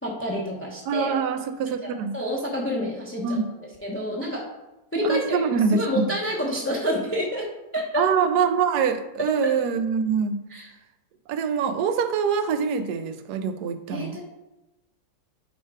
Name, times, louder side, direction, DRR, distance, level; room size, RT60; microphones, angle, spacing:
voice 1, 0.0-1.2 1.6-3.4 3.8-4.4 4.9-7.5 7.7-8.0 10.5-10.7 13.9-14.2, equal, 10° left, -3 dB, 0.6 m, -28 dB
voice 2, 0.9-2.2 3.2-3.5 5.0-5.8 8.0-10.4 11.3-14.2, right 6 dB, 70° right, 9 dB, 1.1 m, -24 dB
5.6 x 4.5 x 4.8 m, 1.0 s
omnidirectional pair, 1.9 m